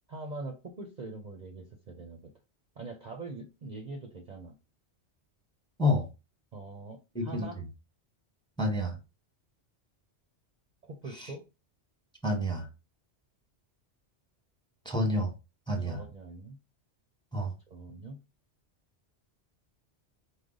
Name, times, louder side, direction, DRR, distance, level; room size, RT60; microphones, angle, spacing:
voice 1, 0.1-2.3 2.8-4.5 6.5-7.6 10.8-11.4 15.8-16.6 17.7-18.2, right 3 dB, 45° right, 0.6 m, -43 dB
voice 2, 7.1-7.5 8.6-8.9 11.2-11.3 12.2-12.7 14.8-15.3 15.7-16.0 17.3-17.5, left 1 dB, 5° left, 0.9 m, -28 dB
4.9 x 2.2 x 3.8 m
omnidirectional pair, 1.2 m